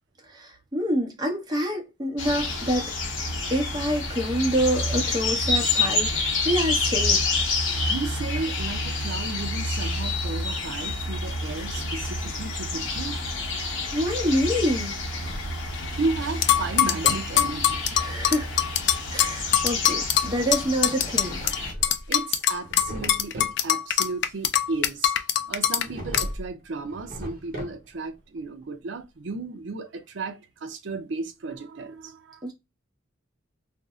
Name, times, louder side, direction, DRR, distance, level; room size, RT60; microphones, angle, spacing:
voice 1, 0.4-2.8 3.5-7.2 13.9-14.9 17.9-18.5 19.1-21.4 32.4-32.5, equal, 20° right, 0.8 m, -26 dB
sound 1, 2.2-21.7, left 3 dB, 80° left, 0.9 m, -28 dB
voice 2, 7.9-13.2 16.0-17.9 22.1-25.1 25.5-32.4, right 3 dB, 65° right, 0.5 m, -34 dB
Drawer open or close, 14.9-15.9 16.3-17.3 21.0-22.1 22.5-23.6 25.8-26.5 26.8-28.1, equal, 50° right, 1.0 m, -38 dB
sound 2, 16.4-21.6 21.8-25.8 26.1-26.3, left 10 dB, 60° left, 0.4 m, -22 dB
2.6 x 2.0 x 3.5 m
head